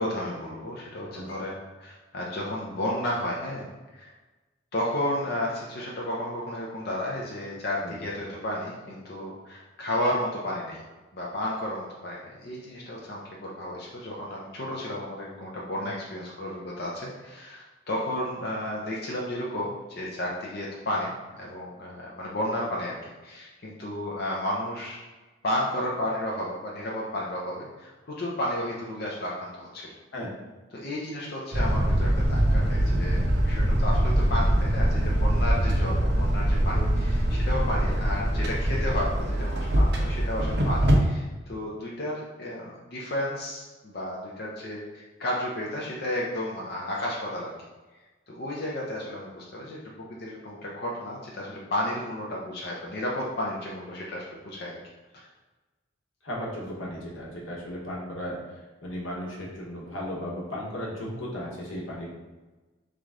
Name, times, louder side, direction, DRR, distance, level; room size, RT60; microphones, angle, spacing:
voice 1, 0.0-3.7 3.9-4.1 4.7-10.8 11.1-25.0 25.4-29.9 30.7-47.5 48.3-54.8, left 1 dB, 50° left, -4 dB, 0.6 m, -32 dB
sound 1, 31.5-41.0, right 1 dB, 55° right, 0.7 m, -23 dB
voice 2, 56.2-58.4 58.8-62.1, equal, 85° left, -4 dB, 1.2 m, -35 dB
3.8 x 3.3 x 3.6 m, 1.2 s
head